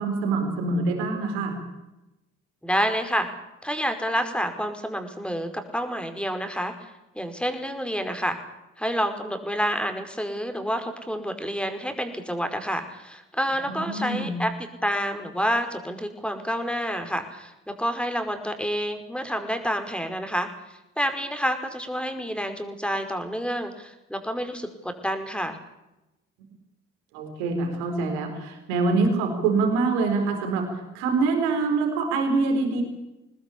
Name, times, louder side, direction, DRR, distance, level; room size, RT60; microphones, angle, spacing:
voice 1, 0.0-1.6 13.7-14.3 27.1-32.8, right 3 dB, 85° right, 4 dB, 4.3 m, -25 dB
voice 2, 2.6-3.3 3.6-8.4 8.8-14.5 14.8-20.5 21.0-25.6, equal, 5° left, 7 dB, 5.2 m, -28 dB
22.0 x 20.0 x 8.6 m, 0.96 s
hypercardioid pair, 45°, 33 cm